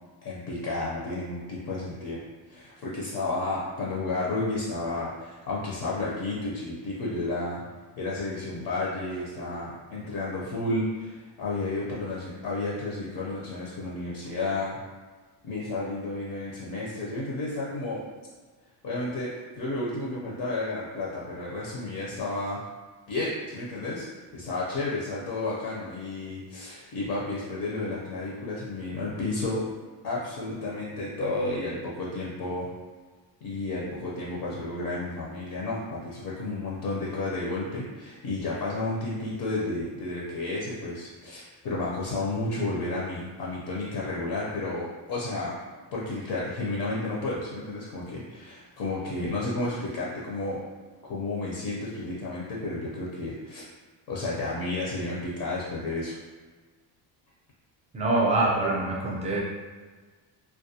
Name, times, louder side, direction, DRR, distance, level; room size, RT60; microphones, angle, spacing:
voice 1, 0.2-7.6 8.0-14.8 15.4-18.0 18.8-22.7 23.1-24.1 24.3-29.7 30.0-32.7 33.4-45.6 45.9-50.6 51.0-53.7 54.1-56.2, left 2 dB, 60° left, -5 dB, 0.6 m, -32 dB
voice 2, 57.9-59.4, right 2 dB, 15° right, -4 dB, 0.5 m, -24 dB
2.3 x 2.2 x 2.7 m, 1.4 s
cardioid pair, 110°, 43 cm